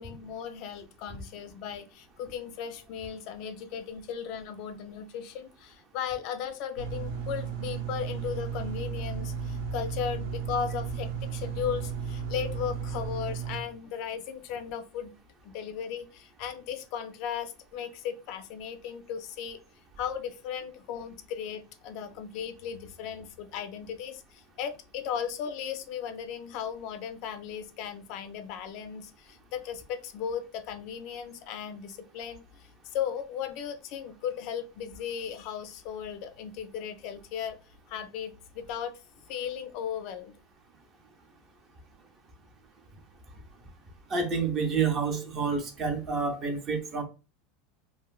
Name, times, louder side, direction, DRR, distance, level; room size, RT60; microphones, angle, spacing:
voice 1, 0.0-15.1 15.4-19.6 20.0-37.6 37.9-38.9 39.3-40.3, left 8 dB, 45° left, 9 dB, 0.3 m, -36 dB
sound 1, 6.8-13.6, right 6 dB, 70° right, 0.7 m, -34 dB
voice 2, 44.1-47.0, right 5 dB, 25° right, 5 dB, 0.5 m, -28 dB
2.9 x 2.5 x 2.3 m, 0.31 s
supercardioid pair, 170°, 0 cm